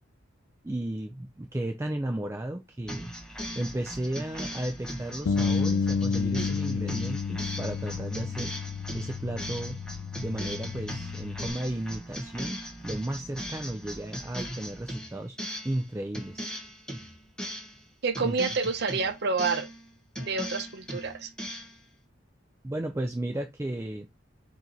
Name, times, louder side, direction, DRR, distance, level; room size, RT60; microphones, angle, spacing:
voice 1, 0.6-3.1 3.6-8.5 8.9-9.8 10.2-15.4 15.6-16.4 18.2-18.4 22.6-24.1, right 1 dB, 15° right, 0.4 m, -34 dB
sound 1, 2.9-15.8 16.1-17.8 18.1-19.8 20.2-21.8, equal, 5° left, 1.1 m, -38 dB
Bass guitar, 5.3-11.5, left 5 dB, 90° left, 0.4 m, -31 dB
voice 2, 18.0-19.7 20.2-21.3, right 4 dB, 55° right, 0.7 m, -28 dB
4.7 x 2.8 x 4.0 m
head